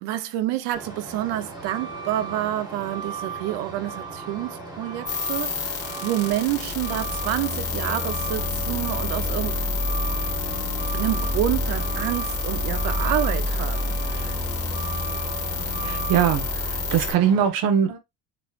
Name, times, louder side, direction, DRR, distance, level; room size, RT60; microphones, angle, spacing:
voice 1, 0.0-5.7 6.0-9.5 10.9-14.4, right 13 dB, 85° right, 0.9 m, -28 dB
Truck, 0.7-17.5, right 4 dB, 10° right, 1.6 m, -36 dB
sound 1, 5.1-17.1, left 3 dB, 40° left, 2.2 m, -28 dB
voice 2, 15.8-18.0, right 8 dB, 60° right, 1.4 m, -22 dB
6.6 x 3.2 x 2.5 m
cardioid pair, 170°, 39 cm